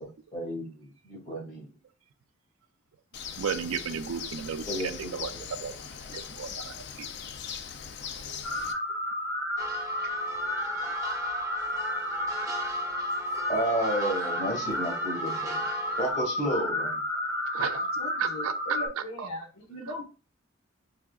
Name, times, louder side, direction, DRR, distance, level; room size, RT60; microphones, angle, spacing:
voice 1, 0.0-1.7 4.6-5.4 13.5-15.6 16.0-16.9, right 1 dB, 40° left, 2.0 m, -32 dB
Bird, 3.1-8.7, left 7 dB, 55° left, 0.4 m, -40 dB
voice 2, 3.3-5.8 6.1-7.1 8.2-8.4 10.0-10.2 12.4-12.5 14.3-14.4 17.2-17.9 18.2-19.3 19.8-19.9, right 7 dB, 85° right, 0.4 m, -35 dB
sound 1, 8.4-18.9, left 1 dB, 20° left, 1.0 m, -31 dB
sound 2, 9.6-16.1, right 2 dB, 15° right, 0.7 m, -40 dB
voice 3, 18.0-20.0, equal, 75° left, 1.1 m, -39 dB
4.7 x 3.4 x 2.3 m
head